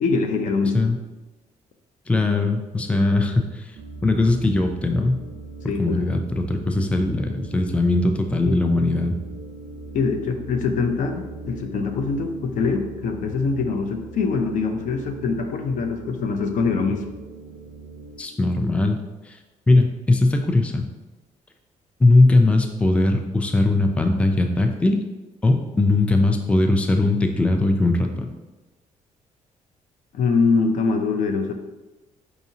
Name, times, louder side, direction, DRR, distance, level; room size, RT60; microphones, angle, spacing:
voice 1, 0.0-0.8 5.7-6.1 8.4-8.6 9.9-17.0 30.1-31.5, left 4 dB, 70° left, 5 dB, 0.5 m, -23 dB
voice 2, 0.6-1.0 2.1-3.7 4.0-5.2 5.8-9.2 18.2-19.0 19.3-19.4 19.7-20.9 22.0-25.0 25.4-28.3, left 2 dB, 10° left, 5 dB, 0.3 m, -20 dB
sound 1, 3.8-18.2, right 3 dB, 65° right, 0.4 m, -39 dB
4.7 x 2.7 x 2.7 m, 1.1 s
cardioid pair, 105°, 14 cm